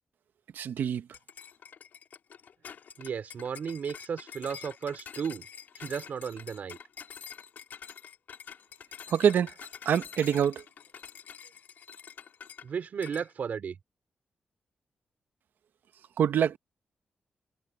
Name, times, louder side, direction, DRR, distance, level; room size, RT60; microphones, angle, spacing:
voice 1, 0.5-1.1 9.1-9.5 9.8-10.6 16.2-16.6, right 8 dB, 85° right, 1.1 m, -25 dB
sound 1, 1.1-12.7 13.0-13.3, left 7 dB, 70° left, 3.6 m, -47 dB
voice 2, 3.0-5.5 5.8-6.8 12.6-13.8, right 7 dB, 55° right, 4.3 m, -34 dB
wide cardioid pair, 150°, 3 cm